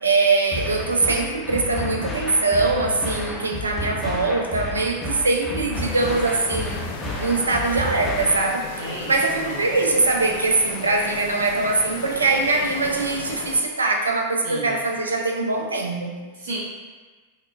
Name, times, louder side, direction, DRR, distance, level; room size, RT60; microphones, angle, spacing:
voice 1, 0.0-6.8 7.2-8.7 9.1-16.2, right 3 dB, 75° right, 2 dB, 0.5 m, -22 dB
sound 1, 0.5-8.5, left 1 dB, 5° left, 0.8 m, -31 dB
sound 2, 5.7-13.6, left 6 dB, 50° left, 0.4 m, -36 dB
voice 2, 8.8-9.6 14.4-14.8 16.3-16.6, right 2 dB, 60° right, -5 dB, 1.0 m, -33 dB
6.2 x 2.3 x 2.4 m, 1.3 s
figure-of-eight pair, 90°, 0 cm